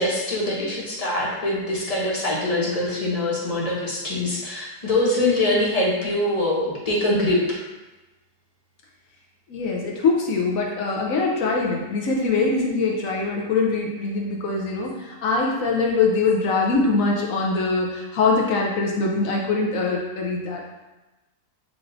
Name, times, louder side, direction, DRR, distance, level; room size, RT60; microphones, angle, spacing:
voice 1, 0.0-7.6, left 1 dB, 35° left, -5 dB, 0.6 m, -23 dB
voice 2, 9.5-20.6, left 3 dB, 65° left, -1 dB, 0.9 m, -23 dB
6.0 x 3.1 x 2.6 m, 1.1 s
omnidirectional pair, 1.8 m